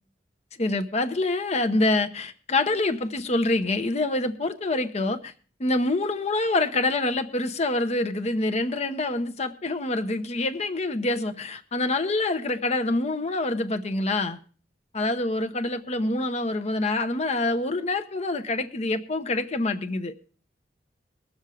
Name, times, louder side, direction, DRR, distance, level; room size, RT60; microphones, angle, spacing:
voice 1, 0.6-5.3 5.6-14.4 14.9-20.1, left 2 dB, 40° left, 8 dB, 0.8 m, -26 dB
19.5 x 7.3 x 4.8 m, 0.41 s
head